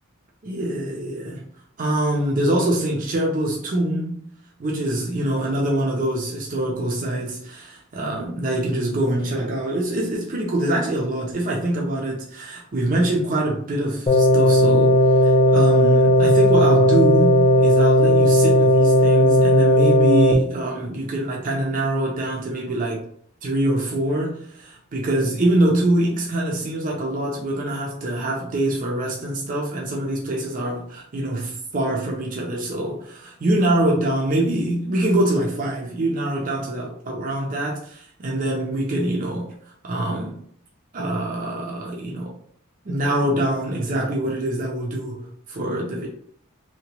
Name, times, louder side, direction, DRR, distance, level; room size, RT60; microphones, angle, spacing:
voice 1, 0.4-1.5 1.8-4.2 4.6-7.7 8.0-23.1 23.4-39.5 39.8-40.4 40.9-42.4 42.8-46.1, right 1 dB, 40° right, 0.5 m, -24 dB
sound 1, 14.1-20.3, equal, 25° left, 0.4 m, -15 dB
2.8 x 2.1 x 2.9 m
head